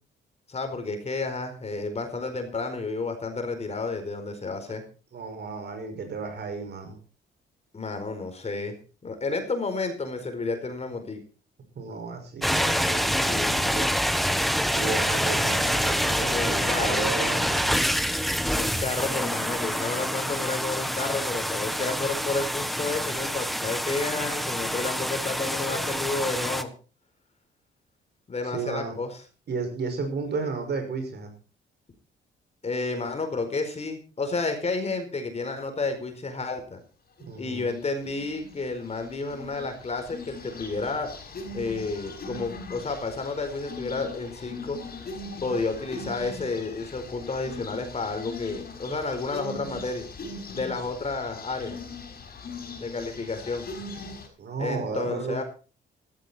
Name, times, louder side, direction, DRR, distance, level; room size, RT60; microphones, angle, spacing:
voice 1, 0.5-4.8 7.7-8.7 9.0-11.2 13.3-13.5 16.3-17.1 18.5-26.7 28.3-29.1 32.6-36.8 37.4-41.1 41.5-44.8 45.4-50.1 50.5-51.8 52.8-53.7 54.6-55.4, left 3 dB, 35° left, 6 dB, 4.6 m, -31 dB
voice 2, 5.1-7.0 11.7-13.9 14.7-17.9 28.4-29.0 29.5-31.3 37.2-37.7 50.8-50.9 54.4-55.4, right 4 dB, 55° right, 6 dB, 5.9 m, -33 dB
sound 1, 12.4-26.6, equal, ahead, 1.4 m, -26 dB
sound 2, 37.2-37.6 38.0-38.6 39.1-54.3, left 3 dB, 50° left, 5.9 m, -40 dB
15.0 x 14.0 x 4.4 m, 0.36 s
cardioid pair, 90°, 20 cm